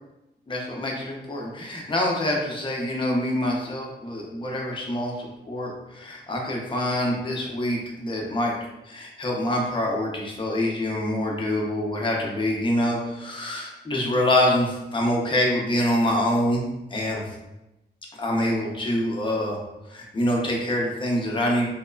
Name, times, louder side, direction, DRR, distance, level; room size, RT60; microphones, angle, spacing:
voice 1, 0.5-8.5 8.9-16.6 16.9-17.2 18.2-19.6 19.9-21.7, left 1 dB, 25° left, -1 dB, 0.5 m, -25 dB
3.0 x 2.0 x 2.2 m, 0.96 s
wide cardioid pair, 135°, 18 cm